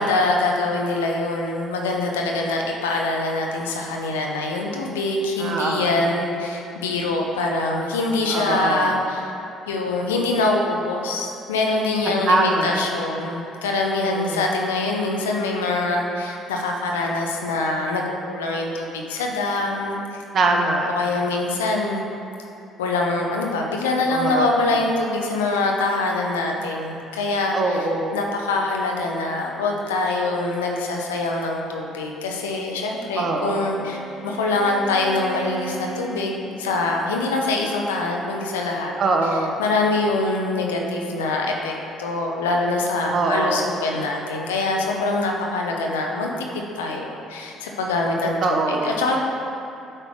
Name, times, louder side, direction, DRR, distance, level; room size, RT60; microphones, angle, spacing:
voice 1, 0.0-9.2 9.7-20.2 20.9-22.0 22.8-27.9 28.1-38.9 39.6-49.2, left 2 dB, 80° left, 0 dB, 0.7 m, -24 dB
voice 2, 5.4-6.0 8.3-8.9 12.1-12.9 14.0-14.4 20.3-20.9 24.1-24.6 27.5-28.3 33.2-33.7 39.0-39.6 43.1-43.7 48.4-48.9, right 2 dB, 50° right, 2 dB, 0.9 m, -23 dB
Bowed string instrument, 32.7-37.0, right 3 dB, 35° left, 1.7 m, -38 dB
8.6 x 3.3 x 6.1 m, 2.7 s
hypercardioid pair, 50°, 0 cm